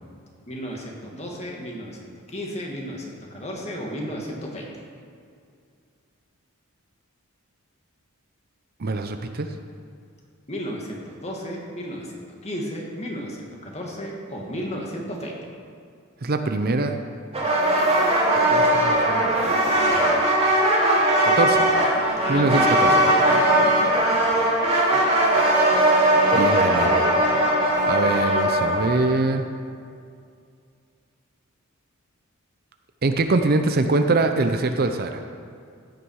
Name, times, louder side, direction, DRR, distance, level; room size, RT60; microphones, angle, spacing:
voice 1, 0.5-2.0 2.3-4.7 10.5-15.4 22.2-23.8, equal, 30° left, -1 dB, 2.2 m, -33 dB
voice 2, 8.8-9.5 16.2-16.9 17.8-20.2 21.2-21.7 22.3-22.7 26.3-27.0 27.9-29.5 33.0-35.2, right 3 dB, 45° right, 7 dB, 0.7 m, -24 dB
sound 1, 17.3-29.1, right 1 dB, 30° right, 2.4 m, -19 dB
15.5 x 9.2 x 4.8 m, 2.3 s
head